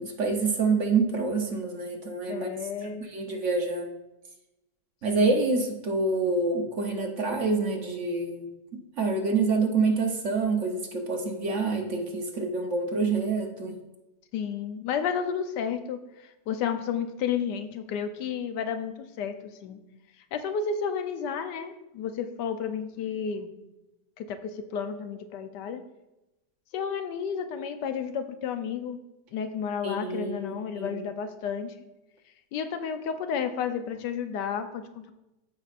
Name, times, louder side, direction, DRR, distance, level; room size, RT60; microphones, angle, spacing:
voice 1, 0.0-2.5 3.1-3.9 5.0-8.5 9.0-13.8 29.8-31.0, right 3 dB, 55° right, 2 dB, 1.1 m, -27 dB
voice 2, 2.3-3.1 5.1-5.4 14.3-19.3 19.6-19.8 20.3-23.5 24.2-25.8 26.7-29.0 29.3-31.7 32.5-35.1, left 7 dB, 85° left, 8 dB, 1.3 m, -32 dB
14.0 x 5.2 x 2.5 m, 0.96 s
omnidirectional pair, 1.8 m